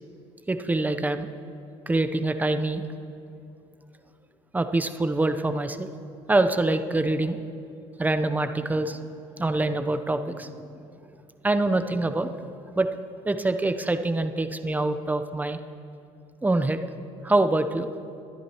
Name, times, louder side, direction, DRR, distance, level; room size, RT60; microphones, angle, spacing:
voice 1, 0.5-1.3 1.9-2.9 4.5-5.9 6.3-7.4 8.0-9.0 9.4-10.5 11.4-12.3 12.8-12.9 13.2-15.6 16.4-16.9 17.2-17.9, right 2 dB, 15° right, 8 dB, 0.8 m, -25 dB
23.5 x 10.0 x 3.0 m, 2.7 s
supercardioid pair, 85°, 13 cm